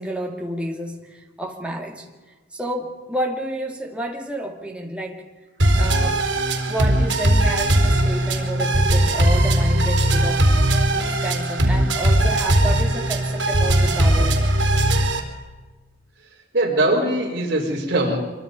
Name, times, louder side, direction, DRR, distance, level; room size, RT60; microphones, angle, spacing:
voice 1, 0.0-2.1 2.5-5.2 5.7-6.2 6.7-10.5 10.9-14.4, right 1 dB, 5° right, 0 dB, 2.6 m, -30 dB
sound 1, 5.6-15.2, right 1 dB, 75° right, 4.1 m, -19 dB
voice 2, 16.5-18.2, right 1 dB, 55° right, -4 dB, 5.2 m, -21 dB
26.0 x 23.5 x 5.5 m, 1.3 s
head